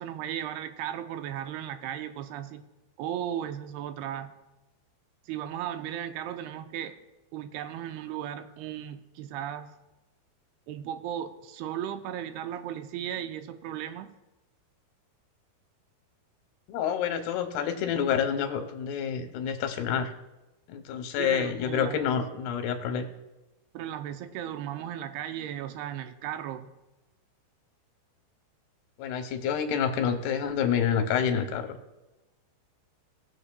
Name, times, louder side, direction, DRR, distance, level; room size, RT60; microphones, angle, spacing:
voice 1, 0.0-2.7 3.0-4.3 5.3-7.0 7.3-9.7 10.7-14.1 21.2-22.1 23.7-26.7, right 10 dB, 85° right, 9 dB, 2.6 m, -36 dB
voice 2, 16.7-20.1 20.7-23.0 29.0-31.8, left 8 dB, 85° left, 7 dB, 2.9 m, -28 dB
17.5 x 7.0 x 2.2 m, 1.0 s
omnidirectional pair, 4.5 m